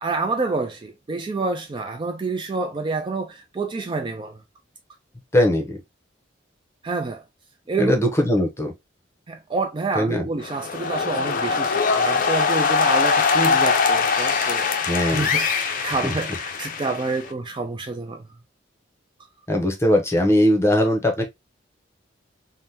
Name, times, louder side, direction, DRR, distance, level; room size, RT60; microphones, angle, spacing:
voice 1, 0.0-4.4 6.8-7.2 7.7-8.0 9.3-18.2, right 3 dB, 25° right, 0.3 m, -28 dB
voice 2, 5.3-5.8 7.8-8.7 9.9-10.3 14.9-15.3 16.0-16.1 19.5-21.2, left 1 dB, 15° left, 0.7 m, -20 dB
sound 1, 10.4-17.3, left 5 dB, 45° left, 0.5 m, -22 dB
3.5 x 2.1 x 2.7 m
head